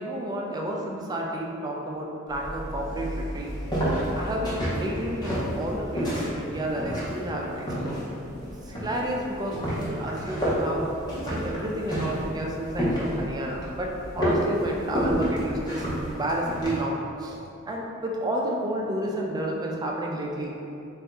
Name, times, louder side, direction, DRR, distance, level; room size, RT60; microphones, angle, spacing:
voice 1, 0.0-3.5 4.1-8.0 8.7-10.9 11.2-17.4 17.7-20.5, right 1 dB, 20° right, -1 dB, 0.4 m, -31 dB
sound 1, 2.3-16.8, equal, 20° left, 0.9 m, -30 dB
3.9 x 2.7 x 3.4 m, 2.8 s
head